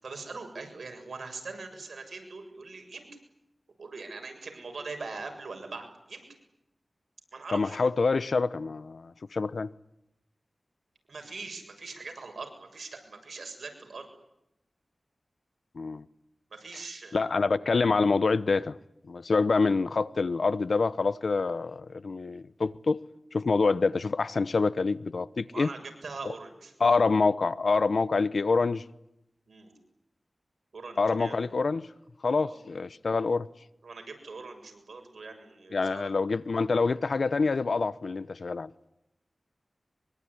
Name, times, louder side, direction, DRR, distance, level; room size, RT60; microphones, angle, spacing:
voice 1, 0.0-3.1 3.8-6.3 7.3-7.8 11.1-14.1 16.5-17.2 25.5-26.7 29.5-29.7 30.7-31.5 32.3-32.6 33.8-36.1, right 4 dB, 85° right, 7.0 m, -42 dB
voice 2, 7.5-9.7 15.7-16.0 17.1-18.8 19.1-23.0 23.3-25.7 26.2-26.3 26.8-28.8 31.0-31.9 32.2-33.5 35.7-38.7, left 4 dB, 75° left, 1.0 m, -26 dB
24.0 x 24.0 x 9.8 m
wide cardioid pair, 65°, 0 cm